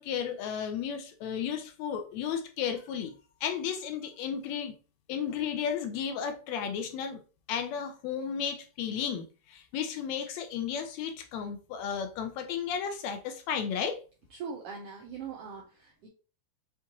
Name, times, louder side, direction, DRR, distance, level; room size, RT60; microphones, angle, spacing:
voice 1, 0.0-3.1 3.4-4.7 5.1-7.2 7.5-14.0, left 7 dB, 80° left, 1.8 m, -33 dB
voice 2, 14.3-16.1, right 6 dB, 75° right, 1.5 m, -41 dB
5.7 x 2.4 x 2.8 m
omnidirectional pair, 3.3 m